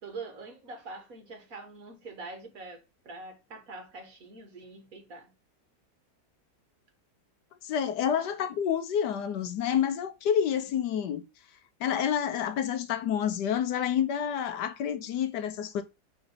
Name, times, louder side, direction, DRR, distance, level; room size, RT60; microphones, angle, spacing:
voice 1, 0.0-5.3, right 3 dB, 50° right, 1.9 m, -44 dB
voice 2, 7.6-11.2 11.8-15.8, left 8 dB, 75° left, 1.3 m, -28 dB
5.2 x 3.9 x 5.4 m
omnidirectional pair, 1.9 m